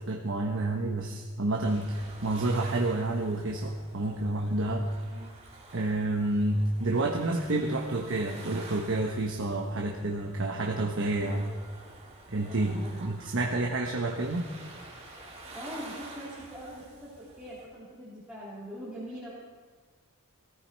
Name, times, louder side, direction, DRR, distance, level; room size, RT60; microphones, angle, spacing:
voice 1, 0.0-4.9 5.7-11.5 12.3-14.5, right 2 dB, 60° right, 0 dB, 1.2 m, -29 dB
sound 1, 1.6-17.7, right 2 dB, 30° right, 3.4 m, -49 dB
voice 2, 11.3-11.6 12.4-13.1 13.4-13.6 15.5-19.3, equal, 5° right, -9 dB, 3.3 m, -43 dB
19.0 x 14.5 x 4.6 m, 1.4 s
head